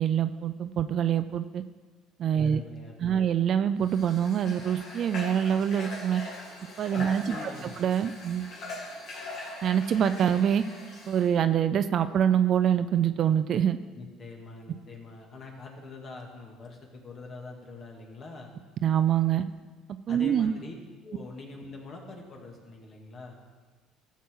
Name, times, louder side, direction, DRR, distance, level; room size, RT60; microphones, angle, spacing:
voice 1, 0.0-1.6 2.2-2.6 3.0-6.2 6.8-7.4 7.8-8.5 9.6-10.6 11.1-13.8 18.8-19.4 20.1-20.5, right 9 dB, 55° right, 11 dB, 0.4 m, -25 dB
voice 2, 2.4-3.3 7.0-7.8 13.9-18.5 20.1-20.7 21.0-23.4, left 3 dB, 45° left, 1 dB, 2.1 m, -44 dB
Water / Water tap faucet, 3.8-11.3, left 2 dB, 65° left, 2.8 m, -41 dB
14.0 x 7.3 x 3.8 m, 1.4 s
supercardioid pair, 85°, 0 cm